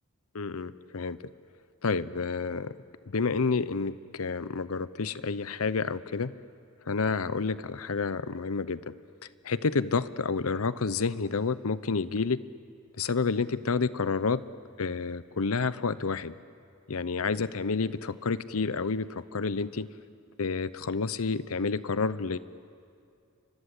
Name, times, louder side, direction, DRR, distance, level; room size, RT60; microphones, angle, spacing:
voice 1, 0.3-1.2 1.8-2.8 3.0-6.3 6.9-8.9 9.4-12.4 13.0-14.4 14.8-16.3 16.9-19.9 20.4-22.4, left 4 dB, 80° left, 15 dB, 0.8 m, -29 dB
29.0 x 24.5 x 8.3 m, 2.4 s
head